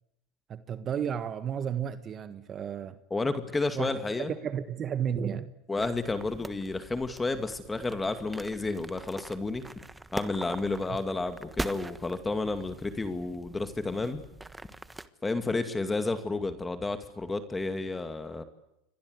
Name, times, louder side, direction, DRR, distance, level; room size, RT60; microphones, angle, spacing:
voice 1, 0.5-3.0 3.7-5.5, right 8 dB, 30° right, 1.5 m, -33 dB
voice 2, 3.1-4.3 5.7-9.7 10.1-14.2 15.2-18.4, left 3 dB, 10° left, 2.3 m, -31 dB
sound 1, 5.8-15.1, right 2 dB, 5° right, 1.3 m, -42 dB
29.0 x 23.5 x 8.2 m
supercardioid pair, 120°, 0 cm